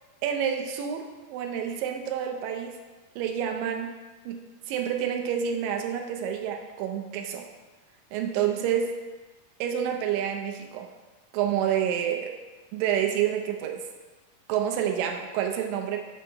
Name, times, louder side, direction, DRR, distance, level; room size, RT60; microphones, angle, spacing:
voice 1, 0.2-2.7 3.2-3.9 4.3-4.4 4.7-7.5 8.1-8.9 9.6-10.9 11.3-12.3 12.7-13.8 14.5-16.0, right 9 dB, 85° right, 3 dB, 2.4 m, -28 dB
5.4 x 4.6 x 5.2 m, 1.2 s
omnidirectional pair, 3.9 m